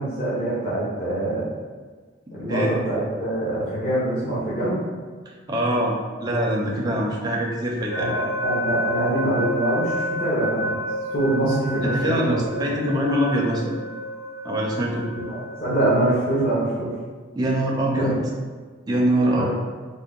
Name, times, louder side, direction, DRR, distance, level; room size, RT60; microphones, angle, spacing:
voice 1, 0.0-1.5 2.3-4.8 6.8-7.0 7.9-10.7 11.1-12.4 12.7-12.8 15.2-16.9 18.0-18.1 19.3-19.5, right 1 dB, 45° left, -10 dB, 0.9 m, -24 dB
voice 2, 5.3-5.9 6.2-8.1 11.8-13.8 14.4-15.1 17.3-18.2 18.9-19.5, right 1 dB, 20° right, -2 dB, 0.4 m, -23 dB
sound 1, 7.9-15.9, equal, 90° left, 0.8 m, -30 dB
3.5 x 2.1 x 3.7 m, 1.4 s
head